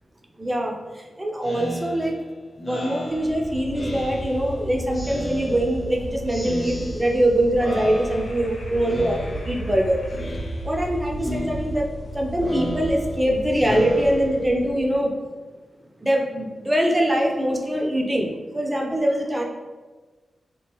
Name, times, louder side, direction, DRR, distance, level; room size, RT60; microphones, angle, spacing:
voice 1, 0.4-2.1 2.7-10.0 10.6-11.9 12.1-15.1 16.0-18.3 18.5-19.4, right 1 dB, 15° right, 0 dB, 0.5 m, -23 dB
Speech synthesizer, 1.4-4.6 4.9-6.0 6.3-7.3 7.6-8.5 8.8-9.7 10.1-10.9 11.2-14.7, left 1 dB, 35° left, 1.1 m, -33 dB
sound 1, 3.1-15.0, right 1 dB, 65° left, 0.5 m, -35 dB
2.9 x 2.4 x 3.0 m, 1.3 s
cardioid pair, 65°, 0 cm